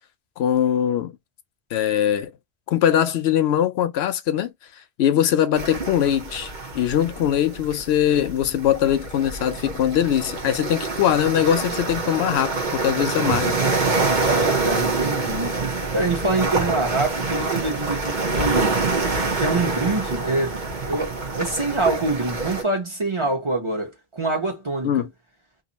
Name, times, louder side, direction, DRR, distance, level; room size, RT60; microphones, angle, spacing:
voice 1, 0.4-1.1 1.7-2.3 2.7-4.5 5.0-13.6 24.8-25.1, left 10 dB, 80° left, 0.8 m, -21 dB
sound 1, 5.5-22.6, right 3 dB, 50° right, 0.9 m, -26 dB
voice 2, 14.2-15.6 15.9-18.8 19.4-20.6 20.8-25.0, right 2 dB, 30° right, 1.1 m, -25 dB
2.7 x 2.6 x 4.0 m
omnidirectional pair, 1.1 m